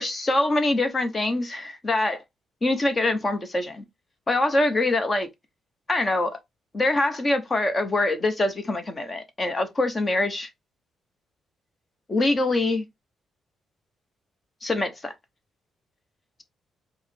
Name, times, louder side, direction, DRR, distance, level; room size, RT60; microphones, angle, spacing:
voice 1, 0.0-2.2 2.6-3.8 4.3-5.3 5.9-6.4 6.7-10.5 12.1-12.8 14.6-15.1, left 2 dB, 25° left, 0.8 m, -24 dB
4.8 x 2.0 x 4.3 m
cardioid pair, 130°, 0 cm